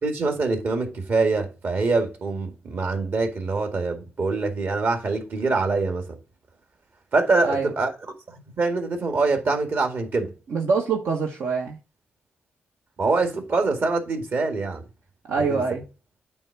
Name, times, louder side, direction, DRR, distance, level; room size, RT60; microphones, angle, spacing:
voice 1, 0.0-6.2 7.1-7.9 8.3-10.3 13.0-14.8 15.4-15.6, right 3 dB, 55° right, 2.0 m, -24 dB
voice 2, 10.5-11.8 15.3-15.8, right 4 dB, 80° right, 1.2 m, -24 dB
8.8 x 3.5 x 5.9 m
cardioid pair, 85°, 4 cm